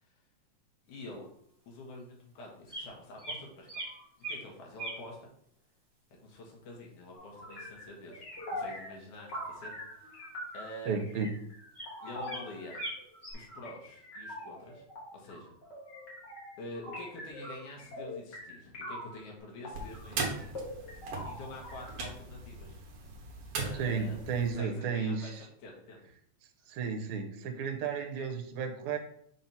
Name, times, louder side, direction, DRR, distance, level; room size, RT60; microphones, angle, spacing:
voice 1, 0.9-1.2 1.7-3.7 4.2-5.3 6.2-10.1 10.5-11.0 12.0-12.8 13.3-14.8 15.1-15.5 16.6-20.5 21.2-22.8 23.6-24.2 24.6-25.3 25.6-26.0, left 1 dB, 75° left, -1 dB, 2.8 m, -47 dB
sound 1, 1.2-1.3 2.7-2.8 3.2-3.4 3.7-4.4 4.8-5.0 10.0-10.2 10.5-10.6 11.2-11.3 11.7-11.9 12.2-12.4 12.7-13.3, right 2 dB, 40° right, 0.3 m, -40 dB
sound 2, 7.1-19.2 19.6-22.0, left 1 dB, 45° left, 1.6 m, -44 dB
voice 2, 10.9-11.4 23.7-25.5 26.7-29.0, right 5 dB, 75° right, 4 dB, 2.1 m, -33 dB
sound 3, 19.7-24.5, right 3 dB, 60° right, 1.8 m, -39 dB
6.1 x 2.9 x 5.4 m, 0.68 s
omnidirectional pair, 3.5 m